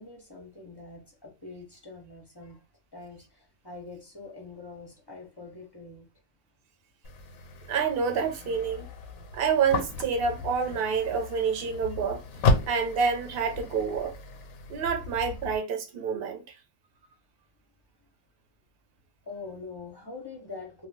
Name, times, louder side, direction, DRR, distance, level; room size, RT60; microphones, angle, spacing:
voice 1, 0.0-2.6 2.9-6.1 19.2-20.9, left 3 dB, 30° left, 0.5 m, -44 dB
sound 1, 7.0-15.6, left 3 dB, 80° left, 1.0 m, -33 dB
voice 2, 7.7-8.9 9.3-12.2 12.7-14.1 14.7-16.4, right 6 dB, 55° right, 0.8 m, -28 dB
2.3 x 2.2 x 3.1 m
omnidirectional pair, 1.4 m